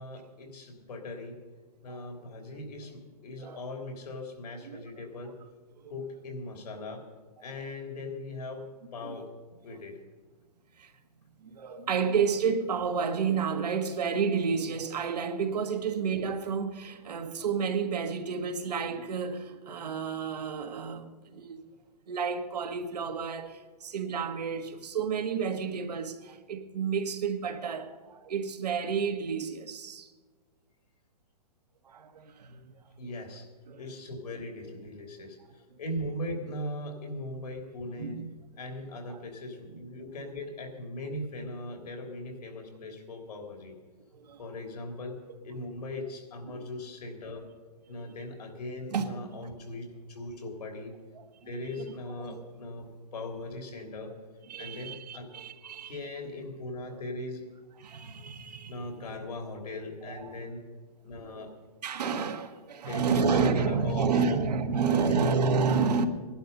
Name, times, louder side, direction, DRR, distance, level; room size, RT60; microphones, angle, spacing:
voice 1, 0.0-1.4 1.8-5.4 5.9-7.0 7.4-10.0 33.0-33.5 33.8-38.2 38.6-43.8 44.4-45.2 45.4-47.4 47.9-50.9 51.5-54.1 54.6-55.3 55.6-57.4 58.7-60.6 61.0-61.5 62.9-65.3 65.8-66.1, left 1 dB, 90° left, 3.3 m, -39 dB
voice 2, 11.4-21.6 22.1-30.1 31.8-32.6 33.0-33.1 33.7-33.8 38.0-38.3 44.1-44.4 46.5-46.6 48.9-49.1 52.2-52.4 54.5-56.0 57.8-58.7 60.1-60.4 61.2-61.4 61.8-66.1, right 5 dB, 90° right, 1.6 m, -30 dB
19.0 x 11.5 x 5.4 m
hypercardioid pair, 175°, 20 cm